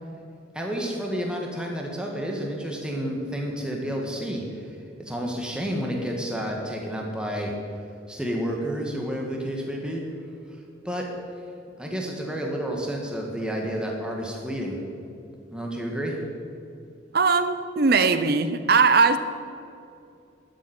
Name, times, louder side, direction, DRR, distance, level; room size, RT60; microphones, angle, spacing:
voice 1, 0.5-4.7 5.0-7.5 8.1-10.0 10.8-11.0 11.8-14.8 15.5-16.2, equal, 5° right, 0 dB, 1.8 m, -30 dB
voice 2, 17.1-19.2, right 4 dB, 50° right, 11 dB, 0.8 m, -20 dB
12.5 x 7.5 x 8.9 m, 2.6 s
head